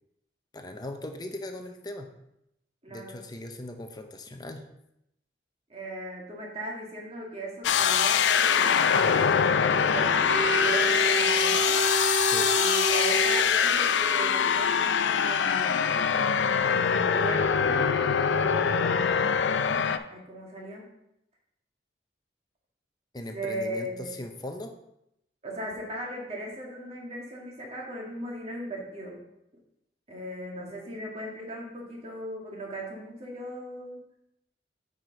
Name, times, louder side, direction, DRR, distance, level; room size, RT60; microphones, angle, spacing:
voice 1, 0.5-2.1 2.9-4.6 12.2-12.5 23.1-24.7, left 1 dB, 25° left, 5 dB, 0.6 m, -39 dB
voice 2, 2.8-3.2 5.7-11.8 12.6-16.0 16.9-19.7 20.1-20.9 23.3-24.2 25.4-29.3 30.1-34.0, right 1 dB, 35° right, -2 dB, 1.8 m, -38 dB
sound 1, 7.6-20.0, left 7 dB, 85° left, 0.4 m, -24 dB
Organ, 10.3-14.2, right 2 dB, 75° right, 0.6 m, -29 dB
8.7 x 5.0 x 3.8 m, 0.81 s
head